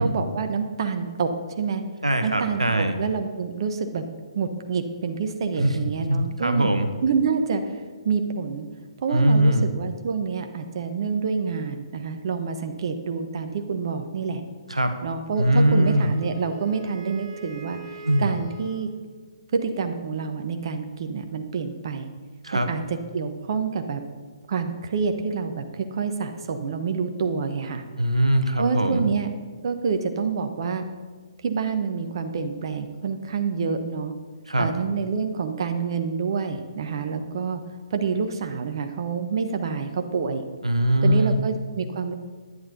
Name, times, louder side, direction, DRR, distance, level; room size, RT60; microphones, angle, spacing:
voice 1, 0.0-1.8 2.2-4.0 4.3-6.7 7.0-7.8 8.0-8.6 9.0-14.4 15.0-17.8 18.2-18.9 19.5-22.1 22.5-24.0 24.5-27.8 28.6-29.3 29.6-30.8 31.4-34.1 34.6-37.6 37.9-40.4 41.0-42.1, right 5 dB, 50° right, 7 dB, 1.2 m, -27 dB
voice 2, 2.0-3.0 5.6-5.8 6.1-6.9 9.1-9.7 14.7-15.0 15.4-16.1 18.0-18.3 22.4-22.7 28.0-29.1 34.5-34.7 40.6-41.4, right 1 dB, 85° right, 8 dB, 1.1 m, -21 dB
Wind instrument woodwind instrument, 15.6-18.8, right 3 dB, 15° right, 3.5 m, -43 dB
11.0 x 9.8 x 5.3 m, 1.5 s
figure-of-eight pair, 135°, 3 cm